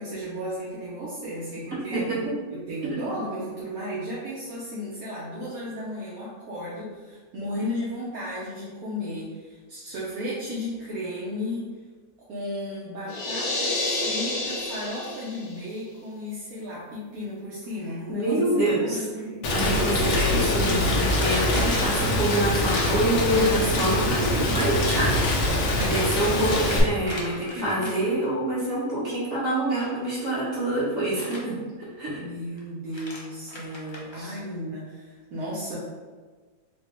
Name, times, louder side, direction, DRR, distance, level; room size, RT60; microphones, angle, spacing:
voice 1, 0.0-2.0 2.5-11.7 12.2-18.5 18.8-19.5 25.7-26.9 27.5-27.9 32.2-35.8, equal, 75° right, -8 dB, 1.2 m, -34 dB
voice 2, 1.9-2.3 2.8-3.0 18.1-19.2 19.5-32.2 34.1-34.3, right 1 dB, 50° right, -10 dB, 1.8 m, -26 dB
sound 1, 13.1-15.6, left 2 dB, 90° left, 1.2 m, -29 dB
sound 2, 17.6-17.9 18.2-18.3 18.8-18.9 19.2-19.3 22.6-24.2 25.4-28.3 29.7-30.3 31.1-31.4 32.6-32.7 32.9-34.2, left 1 dB, 50° left, 0.3 m, -40 dB
Rain, 19.4-26.8, left 1 dB, 70° left, 1.1 m, -24 dB
3.9 x 2.2 x 3.5 m, 1.4 s
omnidirectional pair, 1.5 m